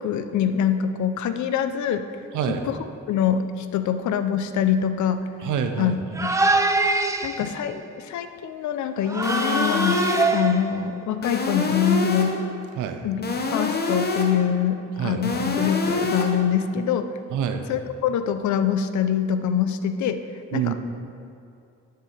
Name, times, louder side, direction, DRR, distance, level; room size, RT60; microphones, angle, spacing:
voice 1, 0.0-2.0 2.7-2.8 3.1-5.3 5.8-6.0 6.2-6.3 7.2-10.0 10.3-12.4 13.0-17.1 17.7-20.2 20.5-20.7, left 8 dB, 70° left, 10 dB, 0.6 m, -24 dB
voice 2, 2.3-2.7 5.4-6.0 12.8-13.1 15.0-15.3 17.3-17.7 20.5-20.7, right 8 dB, 85° right, 7 dB, 0.7 m, -26 dB
sound 1, 6.1-7.6 9.1-10.9, right 2 dB, 10° right, 0.5 m, -23 dB
sound 2, 9.2-10.5 11.2-12.5 13.2-14.5 15.2-16.5, left 2 dB, 35° left, 0.9 m, -26 dB
11.0 x 6.8 x 3.3 m, 2.5 s
cardioid pair, 90°, 30 cm